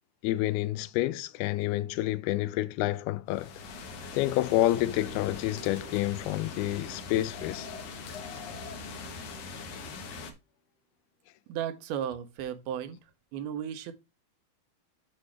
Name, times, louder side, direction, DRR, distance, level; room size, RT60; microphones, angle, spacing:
voice 1, 0.2-3.5 4.1-7.7, left 15 dB, 90° left, 2.5 m, -28 dB
sound 1, 3.3-10.3, left 4 dB, 65° left, 1.6 m, -42 dB
sound 2, 3.9-9.6, right 7 dB, 20° left, 3.9 m, -55 dB
voice 2, 11.5-13.0 13.3-13.9, right 9 dB, 85° right, 2.7 m, -34 dB
7.5 x 6.3 x 3.2 m
omnidirectional pair, 4.3 m